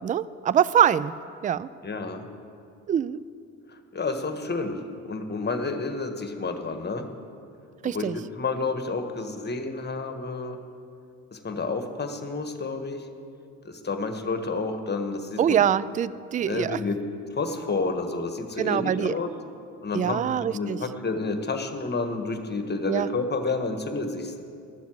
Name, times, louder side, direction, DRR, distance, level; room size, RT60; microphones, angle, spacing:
voice 1, 0.0-1.1 1.4-1.7 2.9-3.2 7.8-8.2 15.4-16.8 18.6-19.2 19.9-20.8 22.9-23.1, right 9 dB, 25° right, 18 dB, 0.3 m, -24 dB
voice 2, 1.8-2.2 3.9-4.8 5.0-7.1 7.8-10.6 11.3-13.0 13.6-15.6 16.4-17.0 17.3-19.3 19.8-24.4, left 3 dB, 30° left, 7 dB, 1.4 m, -30 dB
12.0 x 7.0 x 7.7 m, 2.4 s
hypercardioid pair, 60°, 33 cm